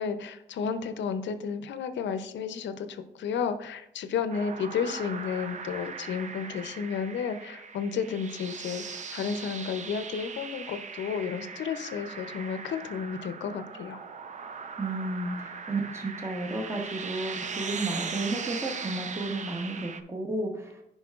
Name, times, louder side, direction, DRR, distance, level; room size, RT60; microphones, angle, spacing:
voice 1, 0.0-14.0, left 6 dB, 65° left, 10 dB, 0.6 m, -32 dB
sound 1, 4.3-20.0, right 5 dB, 35° right, 0.6 m, -39 dB
voice 2, 14.8-20.8, right 2 dB, 15° right, 2 dB, 1.0 m, -32 dB
9.4 x 5.5 x 2.4 m, 0.80 s
cardioid pair, 90°, 20 cm